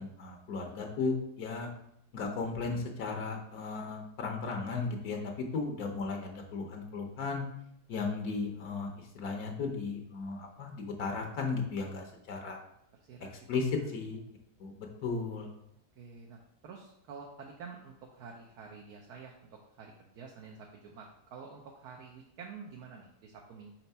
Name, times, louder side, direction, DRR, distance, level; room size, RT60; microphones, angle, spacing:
voice 1, 0.0-1.7 2.1-7.4 7.9-12.6 13.5-14.2 14.6-15.5, left 4 dB, 70° left, 2 dB, 1.3 m, -35 dB
voice 2, 4.9-5.3 13.0-13.9 15.9-23.7, right 5 dB, 75° right, 0 dB, 1.2 m, -49 dB
4.5 x 4.0 x 5.4 m, 0.76 s
omnidirectional pair, 1.7 m